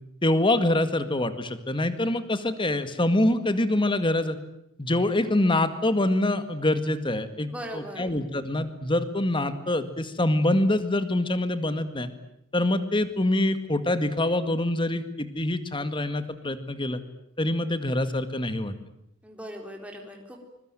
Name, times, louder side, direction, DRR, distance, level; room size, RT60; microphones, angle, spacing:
voice 1, 0.2-4.4 4.8-12.1 12.5-17.0 17.4-18.7, left 1 dB, 25° left, 11 dB, 2.0 m, -25 dB
voice 2, 7.5-8.1 19.2-20.4, equal, 5° right, 2 dB, 4.0 m, -39 dB
25.0 x 22.5 x 9.1 m, 0.79 s
head